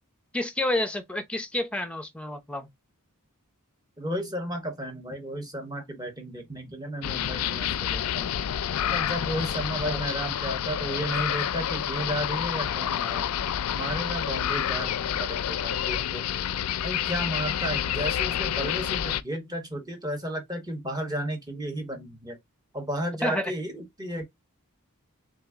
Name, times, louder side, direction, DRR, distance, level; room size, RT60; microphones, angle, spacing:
voice 1, 0.3-2.7 9.8-10.3 23.2-23.5, left 1 dB, 5° left, 0.6 m, -30 dB
voice 2, 4.0-8.3 8.8-13.3 13.7-16.2 16.8-22.4 22.7-24.2, equal, 20° right, 1.2 m, -33 dB
sound 1, 7.0-19.2, left 10 dB, 70° left, 0.4 m, -29 dB
3.7 x 2.9 x 3.5 m
head